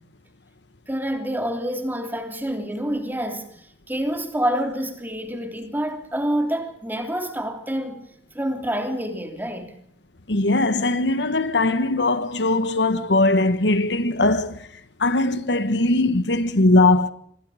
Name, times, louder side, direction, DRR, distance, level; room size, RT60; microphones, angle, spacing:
voice 1, 0.9-3.5 3.9-8.0 8.3-9.8, equal, 10° right, 3.1 m, -27 dB
voice 2, 10.3-14.7 15.0-17.1, left 2 dB, 90° left, 1.4 m, -20 dB
26.0 x 21.0 x 5.0 m
head